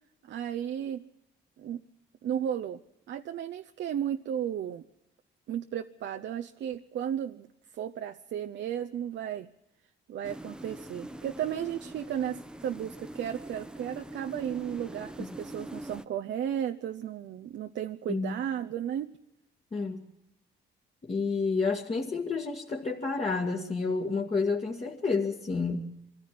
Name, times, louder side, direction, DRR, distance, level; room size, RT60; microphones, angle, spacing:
voice 1, 0.3-1.0 1.6-1.8 2.2-2.8 3.1-4.8 5.5-7.5 7.7-9.5 10.1-19.1, right 9 dB, 65° right, 6 dB, 0.7 m, -34 dB
sound 1, 10.2-16.1, right 1 dB, 5° right, 0.8 m, -43 dB
voice 2, 19.7-20.1 21.0-25.9, left 4 dB, 35° left, -1 dB, 2.1 m, -30 dB
24.0 x 14.5 x 7.6 m, 0.91 s
cardioid pair, 90°, 20 cm